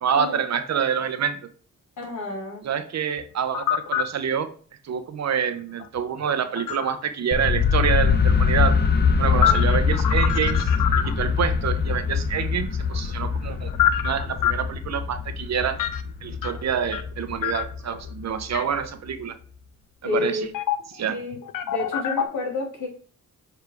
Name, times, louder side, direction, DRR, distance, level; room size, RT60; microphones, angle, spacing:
voice 1, 0.0-1.4 2.6-4.5 4.8-8.8 9.2-13.7 14.0-15.8 16.2-19.4 20.0-20.5 20.9-21.2, right 7 dB, 55° right, 10 dB, 0.7 m, -27 dB
voice 2, 2.0-2.6 9.3-9.6 20.0-20.5 21.1-21.4 21.6-22.9, left 3 dB, 65° left, -2 dB, 3.2 m, -30 dB
sound 1, 3.2-4.1 5.8-7.0 8.9-11.4 12.8-14.6 15.8-16.0 16.4-17.1 17.4-18.0 18.5-18.6 20.5-21.0 21.3-22.3, left 11 dB, 85° left, 0.7 m, -25 dB
sound 2, 7.3-19.1, left 6 dB, 30° left, 0.7 m, -24 dB
6.9 x 3.5 x 4.6 m, 0.44 s
cardioid pair, 95°, 32 cm